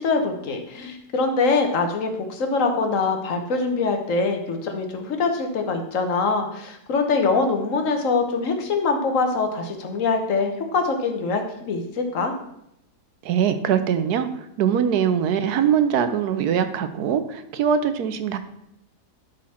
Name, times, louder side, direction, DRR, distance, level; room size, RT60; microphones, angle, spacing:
voice 1, 0.0-12.3, left 4 dB, 55° left, 5 dB, 1.4 m, -23 dB
voice 2, 13.2-18.4, right 8 dB, 75° right, 10 dB, 1.2 m, -22 dB
11.5 x 4.1 x 4.3 m, 0.78 s
omnidirectional pair, 1.7 m